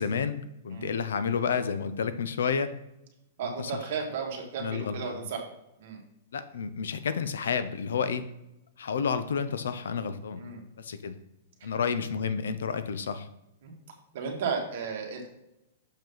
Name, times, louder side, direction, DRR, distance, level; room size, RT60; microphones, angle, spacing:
voice 1, 0.0-2.7 3.4-3.8 4.6-5.2 6.3-8.3 8.8-10.4 10.8-11.2 11.6-13.3, left 6 dB, 90° left, 11 dB, 0.6 m, -30 dB
voice 2, 3.4-5.4 5.8-6.0 10.4-10.6 11.6-11.7 13.6-13.7 14.1-15.3, right 5 dB, 50° right, 0 dB, 1.6 m, -34 dB
6.8 x 5.1 x 3.9 m, 0.89 s
hypercardioid pair, 165°, 0 cm